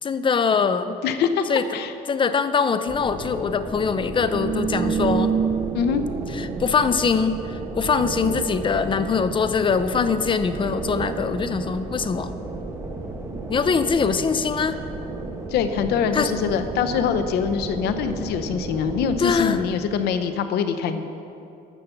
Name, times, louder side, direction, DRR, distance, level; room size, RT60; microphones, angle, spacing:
voice 1, 0.0-1.0 1.5-1.7 2.1-5.3 6.3-12.3 13.5-14.8 16.1-16.3 19.2-19.6, left 5 dB, 30° left, 11 dB, 0.6 m, -23 dB
voice 2, 1.0-1.4 1.7-1.9 5.7-6.0 15.5-21.1, left 7 dB, 75° left, 9 dB, 0.8 m, -24 dB
sound 1, 2.9-19.7, right 1 dB, 15° right, 1.4 m, -35 dB
sound 2, 4.1-19.9, right 7 dB, 50° right, 0.5 m, -32 dB
13.0 x 6.7 x 5.8 m, 2.7 s
cardioid pair, 110°, 17 cm